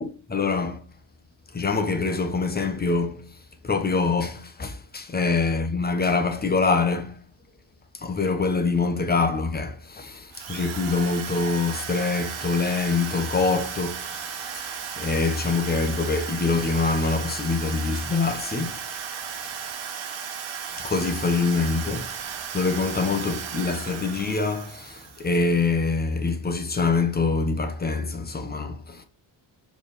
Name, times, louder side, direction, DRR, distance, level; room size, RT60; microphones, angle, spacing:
voice 1, 0.0-0.8 1.5-3.4 3.6-7.2 7.9-18.8 20.8-29.0, left 4 dB, 20° left, 0.9 m, -25 dB
Drill, 10.3-25.5, right 7 dB, 75° right, 1.2 m, -35 dB
6.9 x 3.6 x 4.1 m
wide cardioid pair, 145°, 48 cm